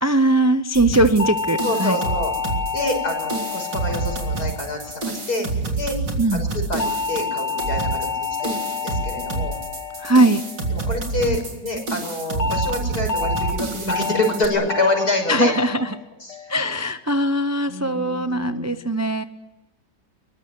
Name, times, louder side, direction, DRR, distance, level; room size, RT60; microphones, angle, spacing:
voice 1, 0.0-2.0 6.2-6.5 10.0-10.4 15.3-15.9 16.5-19.2, right 1 dB, 25° right, 10 dB, 0.3 m, -20 dB
sound 1, 0.7-14.5, right 3 dB, 85° right, 4.1 m, -28 dB
sound 2, 1.2-5.7 6.8-11.3 12.4-12.7 13.1-13.5 13.9-14.3 14.7-15.1 15.5-15.9 16.3-16.7, left 5 dB, 75° left, 3.0 m, -29 dB
voice 2, 1.6-2.3 2.7-5.5 5.8-6.0 6.3-9.6 10.7-15.5 16.2-16.6 17.7-18.8, left 2 dB, 60° left, 4 dB, 6.8 m, -26 dB
23.0 x 23.0 x 9.6 m, 1.0 s
omnidirectional pair, 1.9 m